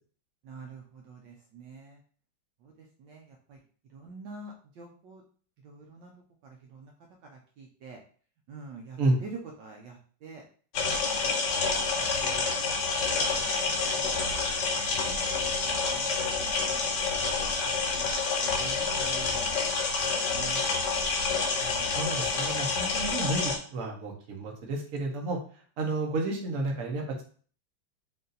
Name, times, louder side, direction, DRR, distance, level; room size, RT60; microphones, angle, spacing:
voice 1, 0.4-2.0 2.6-2.7 3.0-3.6 3.9-5.2 5.6-6.1 6.4-6.9 7.3-8.0 8.5-10.4 10.8-10.9 11.2-11.4 11.9-14.3 14.7-17.0 17.6-18.1 18.4-19.8 20.1-20.9 21.6-21.9, right 4 dB, 70° right, 0 dB, 1.3 m, -47 dB
sound 1, 10.7-23.6, left 4 dB, 65° left, 1.3 m, -28 dB
voice 2, 21.9-25.4 25.8-27.2, right 2 dB, 55° right, 1 dB, 1.1 m, -31 dB
4.1 x 2.6 x 3.9 m, 0.43 s
omnidirectional pair, 2.2 m